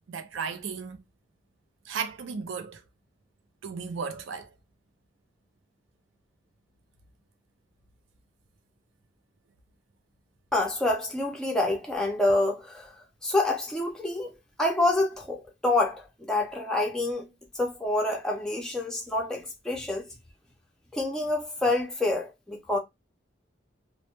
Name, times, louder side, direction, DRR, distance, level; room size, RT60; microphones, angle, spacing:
voice 1, 0.1-1.0 1.9-2.8 3.6-4.5, right 5 dB, 80° right, 0.4 m, -35 dB
voice 2, 10.5-12.9 13.2-17.3 17.5-20.1 20.9-22.8, left 2 dB, 5° left, 0.5 m, -27 dB
2.1 x 2.1 x 2.8 m
head